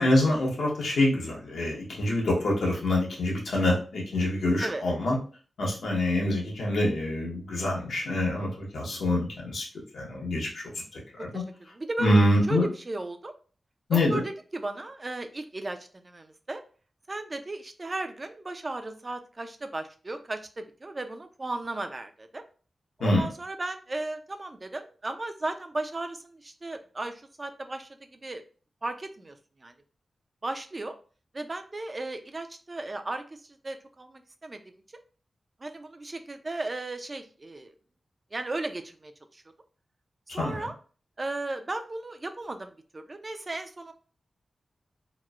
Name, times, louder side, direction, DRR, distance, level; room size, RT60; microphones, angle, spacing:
voice 1, 0.0-5.2 5.6-9.6 9.9-10.6 10.9-11.4 12.0-12.7 13.9-14.2 23.0-23.3 40.4-40.7, left 1 dB, 90° left, -3 dB, 0.9 m, -25 dB
voice 2, 11.7-12.2 12.5-13.3 13.9-16.6 17.1-22.4 23.0-28.4 28.8-29.4 29.6-29.7 30.4-30.9 31.3-33.2 33.6-34.7 35.6-37.7 38.3-39.4 40.3-40.7 41.2-43.9, right 2 dB, 35° right, 7 dB, 0.3 m, -35 dB
2.9 x 2.0 x 2.3 m, 0.39 s
cardioid pair, 60°, 0 cm